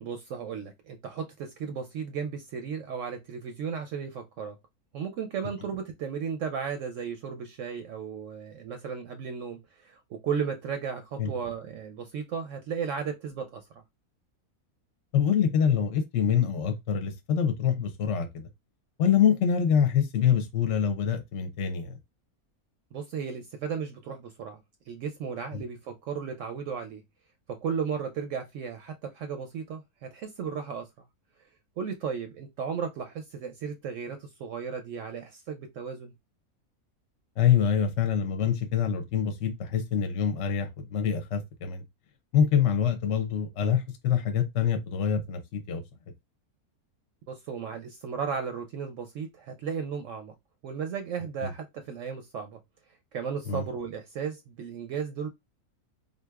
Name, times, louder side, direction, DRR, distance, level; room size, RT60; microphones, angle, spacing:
voice 1, 0.0-4.6 4.9-13.8 22.9-24.6 24.9-27.0 27.5-30.9 31.8-36.1 47.3-50.3 50.6-52.6 53.1-55.3, right 6 dB, 70° right, 0.8 m, -35 dB
voice 2, 15.1-18.5 19.0-22.0 25.5-25.6 37.4-41.8 42.3-45.8 51.4-51.5 53.5-53.7, left 8 dB, 60° left, 0.9 m, -25 dB
3.8 x 2.7 x 2.3 m
omnidirectional pair, 1.6 m